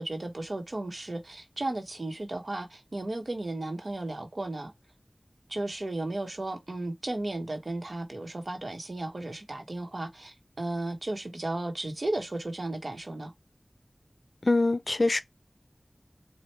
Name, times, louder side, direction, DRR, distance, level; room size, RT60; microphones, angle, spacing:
voice 1, 0.0-4.7 5.5-13.3, right 2 dB, 65° right, 1.3 m, -34 dB
voice 2, 14.4-15.2, left 2 dB, 65° left, 0.5 m, -24 dB
4.5 x 2.5 x 3.2 m
wide cardioid pair, 55°, 0 cm